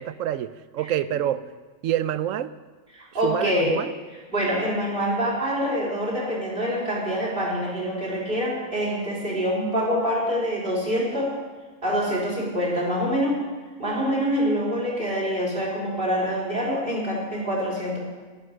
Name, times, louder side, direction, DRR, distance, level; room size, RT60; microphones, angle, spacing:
voice 1, 0.0-1.4 1.8-2.5 3.2-3.9, right 11 dB, 80° right, 15 dB, 1.0 m, -27 dB
voice 2, 2.9-3.8 4.3-11.3 11.8-13.4 13.8-18.0, equal, 45° right, -4 dB, 3.9 m, -25 dB
11.5 x 11.0 x 6.6 m, 1.4 s
omnidirectional pair, 1.3 m